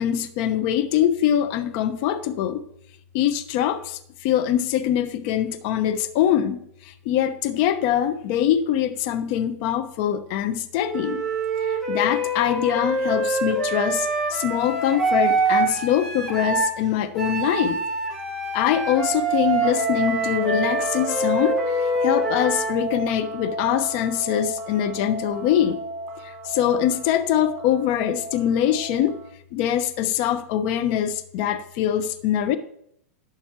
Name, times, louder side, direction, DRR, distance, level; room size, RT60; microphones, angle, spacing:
voice 1, 0.0-2.6 3.1-11.2 11.6-17.8 18.5-25.8 26.2-29.2 29.5-32.6, left 10 dB, 50° left, 11 dB, 0.9 m, -23 dB
Wind instrument woodwind instrument, 10.9-16.8 17.2-22.8, right 2 dB, ahead, 3.9 m, -25 dB
sound 1, 19.6-29.3, right 2 dB, 50° right, 1.6 m, -32 dB
11.5 x 7.1 x 4.4 m, 0.71 s
hypercardioid pair, 115°, 8 cm